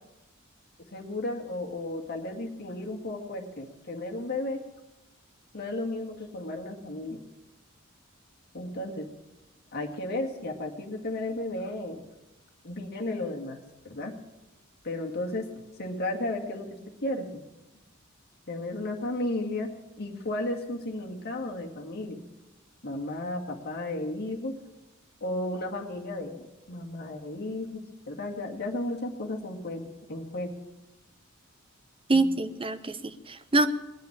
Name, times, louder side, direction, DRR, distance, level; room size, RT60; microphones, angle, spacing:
voice 1, 0.9-4.6 5.5-7.2 8.5-9.1 9.7-12.0 12.6-13.6 13.8-14.1 14.8-15.5 15.8-17.4 18.5-22.2 22.8-24.5 25.2-30.5 32.1-32.2, left 2 dB, 50° left, 1 dB, 2.1 m, -34 dB
voice 2, 32.1-33.7, right 2 dB, 25° right, 11 dB, 0.8 m, -25 dB
19.5 x 7.6 x 8.8 m, 1.0 s
head